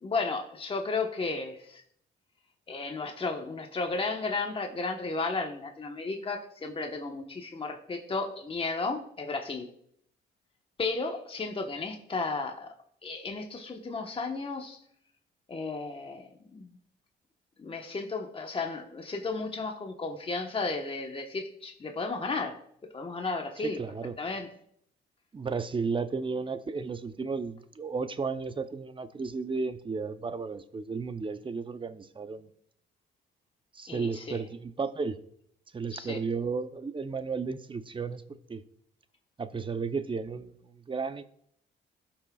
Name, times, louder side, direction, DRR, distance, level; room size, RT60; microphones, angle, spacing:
voice 1, 0.0-1.8 2.7-9.7 10.8-12.8 13.0-14.8 15.5-16.7 17.6-22.6 22.9-23.8 24.2-24.5 33.9-34.4 35.9-36.2, left 3 dB, 25° left, 1.1 m, -34 dB
voice 2, 23.6-24.1 25.3-32.5 33.7-35.2 35.7-38.6 39.4-41.2, right 4 dB, 25° right, 0.7 m, -33 dB
17.5 x 5.9 x 2.3 m
cardioid pair, 90°, 20 cm